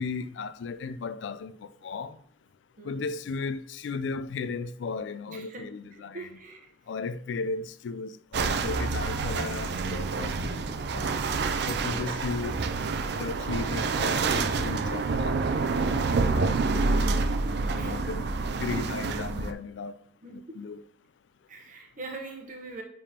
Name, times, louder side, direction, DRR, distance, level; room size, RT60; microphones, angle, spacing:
voice 1, 0.0-2.2 2.8-6.3 6.9-11.2 11.7-12.6 13.2-15.4 15.7-17.3 17.7-20.0 20.3-20.8, left 4 dB, 80° left, 0.4 m, -36 dB
voice 2, 2.8-3.2 5.3-5.7 6.1-6.7 11.9-12.2 16.4-16.8 17.5-18.1 20.2-20.6 21.5-22.8, right 3 dB, 45° right, 0.9 m, -43 dB
sound 1, 8.3-19.5, right 4 dB, 65° right, 0.4 m, -28 dB
9.8 x 3.6 x 2.8 m
head